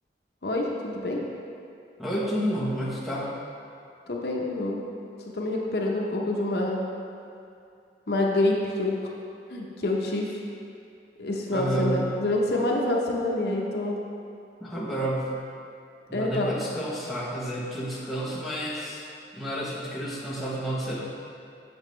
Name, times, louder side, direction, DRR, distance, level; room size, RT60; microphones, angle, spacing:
voice 1, 0.4-1.2 4.1-4.8 5.3-6.8 8.1-8.9 9.5-10.4 11.2-14.0 16.1-16.5, left 2 dB, 65° left, -1 dB, 0.8 m, -27 dB
voice 2, 2.0-3.3 11.5-12.1 14.6-15.4 16.1-19.1 19.3-21.0, right 1 dB, ahead, -8 dB, 1.0 m, -30 dB
7.1 x 6.7 x 3.2 m, 2.4 s
head